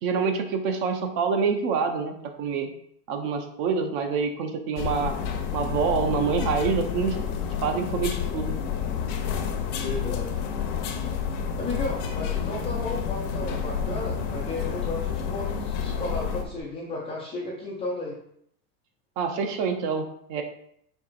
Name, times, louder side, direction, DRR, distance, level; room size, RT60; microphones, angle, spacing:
voice 1, 0.0-2.7 3.1-5.1 5.5-7.2 7.6-8.6 19.2-20.0 20.3-20.4, right 5 dB, 45° right, 4 dB, 0.7 m, -26 dB
sound 1, 4.8-16.4, left 8 dB, 50° left, 0.7 m, -30 dB
voice 2, 9.8-10.4 11.6-18.2, left 2 dB, 15° left, -7 dB, 0.3 m, -33 dB
sound 2, 11.3-16.6, right 2 dB, 70° right, 1.1 m, -39 dB
4.7 x 4.5 x 2.4 m, 0.69 s
supercardioid pair, 150°, 47 cm